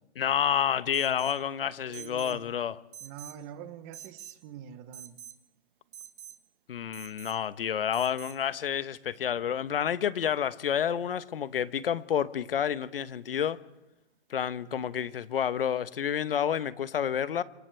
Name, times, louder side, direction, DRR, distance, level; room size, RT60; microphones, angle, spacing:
voice 1, 0.2-2.8 6.7-13.6 14.3-17.4, left 9 dB, 55° left, 1.1 m, -29 dB
Alarm, 0.9-1.4 1.9-2.4 2.9-3.4 3.9-4.4 4.9-5.4 5.9-6.4 6.9-7.4 7.9-8.4, right 9 dB, 50° right, 1.5 m, -46 dB
voice 2, 1.8-2.5 3.0-5.2 14.7-14.8, right 9 dB, 15° right, 0.8 m, -45 dB
29.0 x 26.5 x 3.4 m
hypercardioid pair, 165°, 34 cm